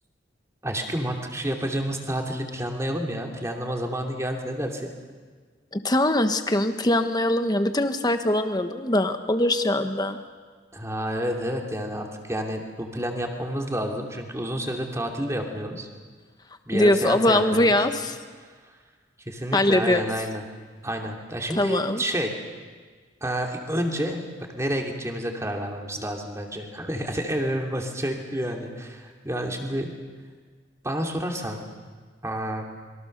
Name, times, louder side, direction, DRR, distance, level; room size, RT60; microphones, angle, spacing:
voice 1, 0.6-4.9 10.7-15.9 16.7-17.8 18.6-18.8 19.2-20.4 20.8-22.3 23.2-29.9 30.8-31.7 32.2-32.7, equal, 15° right, 2 dB, 2.7 m, -29 dB
voice 2, 5.7-10.2 16.7-18.1 19.5-20.0 21.6-22.0, left 1 dB, 20° left, 7 dB, 1.3 m, -22 dB
27.0 x 23.0 x 6.7 m, 1.5 s
head